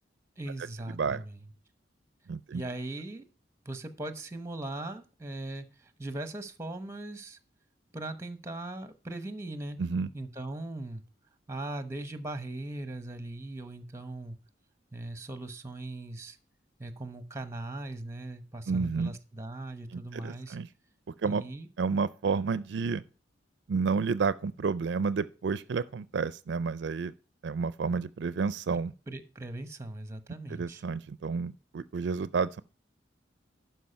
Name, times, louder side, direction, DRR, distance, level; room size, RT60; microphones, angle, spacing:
voice 1, 0.4-1.4 2.5-3.2 3.6-7.4 7.9-9.8 10.1-11.0 11.5-14.4 14.9-16.4 16.8-20.6 21.2-21.7 29.1-30.8, right 2 dB, 15° right, 1.0 m, -39 dB
voice 2, 2.3-2.6 9.8-10.1 18.7-19.1 19.9-20.7 21.2-21.4 21.8-23.0 23.7-27.1 27.4-28.9 30.5-32.6, right 5 dB, 70° right, 0.4 m, -30 dB
12.0 x 4.7 x 5.6 m
head